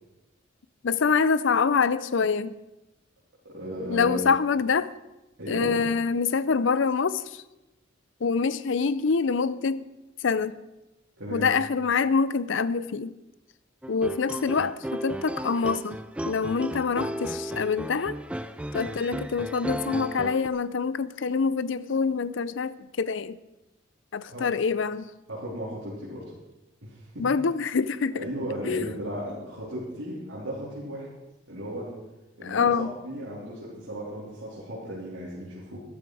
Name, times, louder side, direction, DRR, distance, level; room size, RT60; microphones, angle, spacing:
voice 1, 0.8-2.6 3.9-4.9 5.5-7.4 8.2-9.9 10.2-10.6 11.3-13.1 13.9-16.0 16.3-18.2 18.7-23.4 24.1-25.1 27.2-28.2 28.7-28.9 32.4-32.9, left 5 dB, 65° left, 0.5 m, -25 dB
voice 2, 3.5-4.2 5.4-5.7 11.2-11.5 24.3-24.5 25.3-26.2 26.8-27.3 28.1-31.1 31.5-31.9 32.4-32.7 33.0-35.8, equal, 75° right, 3.6 m, -35 dB
sound 1, 13.8-20.5, right 1 dB, 5° right, 0.4 m, -34 dB
14.0 x 12.0 x 4.8 m
head